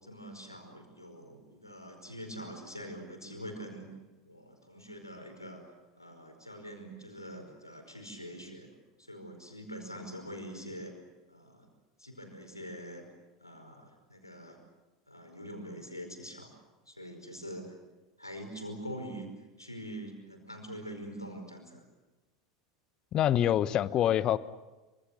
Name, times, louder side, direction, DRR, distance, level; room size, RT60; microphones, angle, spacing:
voice 1, 0.0-3.9 4.2-5.6 6.0-8.7 9.0-10.9 11.3-11.7 12.0-13.0 13.4-14.6 15.1-16.5 16.9-17.7 18.2-19.3 19.6-21.8, equal, 90° left, 4 dB, 5.0 m, -44 dB
voice 2, 23.1-24.4, left 11 dB, 35° left, 17 dB, 1.1 m, -25 dB
26.0 x 26.0 x 6.7 m, 1.2 s
figure-of-eight pair, 80°, 2 cm